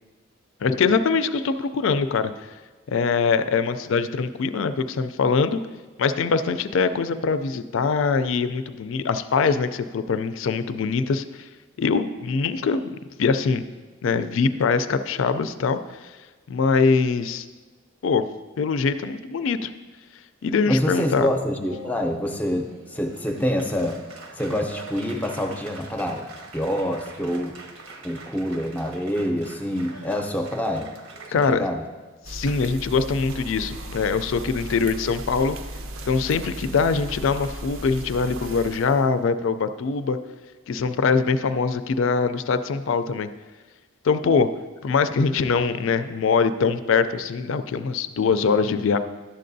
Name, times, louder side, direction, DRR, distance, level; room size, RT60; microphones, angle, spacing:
voice 1, 0.6-2.3 2.9-5.6 6.0-11.2 11.8-12.9 13.2-13.6 14.0-16.1 16.5-17.5 18.0-18.3 18.6-19.7 20.4-21.3 31.3-31.7 32.3-35.6 36.1-40.2 40.7-43.3 44.0-44.5 44.8-49.0, left 5 dB, 65° left, 12 dB, 0.4 m, -23 dB
voice 2, 20.7-24.0 24.3-26.3 26.5-27.6 28.0-30.9 31.3-31.8, equal, 5° left, 4 dB, 0.5 m, -26 dB
Applause, 21.7-31.5, right 3 dB, 85° right, 1.0 m, -43 dB
sound 1, 32.2-39.2, right 1 dB, 70° right, 0.6 m, -36 dB
11.5 x 7.5 x 2.6 m, 1.3 s
head